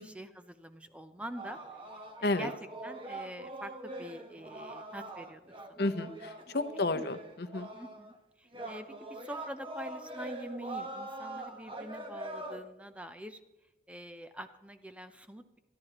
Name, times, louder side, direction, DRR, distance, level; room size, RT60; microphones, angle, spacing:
voice 1, 0.0-2.5 2.8-5.4 5.7-5.9 6.7-7.0 7.7-13.4 13.9-15.6, right 1 dB, 5° right, 8 dB, 0.6 m, -45 dB
sound 1, 1.4-8.1 8.5-12.6, right 1 dB, 25° right, 1.3 m, -43 dB
voice 2, 5.8-7.7, left 2 dB, 55° left, 10 dB, 0.9 m, -32 dB
25.5 x 11.5 x 3.0 m, 1.0 s
head